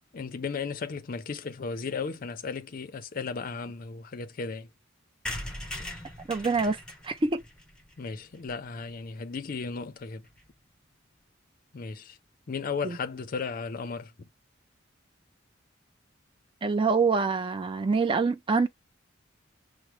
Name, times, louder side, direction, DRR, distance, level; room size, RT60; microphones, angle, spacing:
voice 1, 0.1-4.7 8.0-10.2 11.7-12.2 12.5-14.3, left 5 dB, 45° left, 0.5 m, -35 dB
sound 1, 5.3-8.9 9.4-9.5 9.7-9.8 10.0-10.1 10.3-10.5, left 1 dB, 5° left, 0.7 m, -40 dB
voice 2, 6.3-6.8 7.0-7.4 12.8-13.0 16.6-18.7, right 4 dB, 25° right, 0.4 m, -25 dB
5.9 x 2.0 x 3.0 m
head